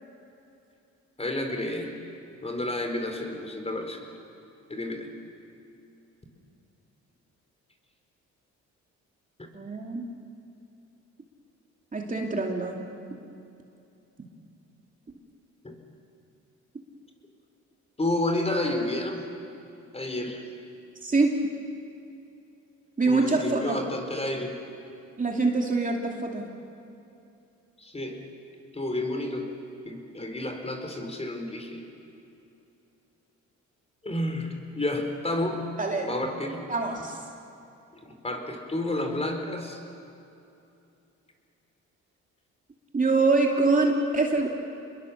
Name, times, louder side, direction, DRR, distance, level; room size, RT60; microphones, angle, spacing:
voice 1, 1.2-1.9 2.4-4.0 4.7-5.1 15.6-15.7 18.0-19.2 19.9-20.4 23.1-24.6 27.8-28.2 28.7-29.5 29.8-31.8 34.0-35.7 36.0-36.6 38.0-39.8, left 1 dB, 20° left, 4 dB, 4.3 m, -30 dB
voice 2, 9.5-10.0 11.9-12.8 21.0-21.4 23.0-23.8 25.2-26.5 35.8-36.1 36.7-37.2 42.9-44.5, right 3 dB, 25° right, 0 dB, 2.7 m, -24 dB
28.0 x 21.5 x 7.2 m, 2.8 s
cardioid pair, 90°, 30 cm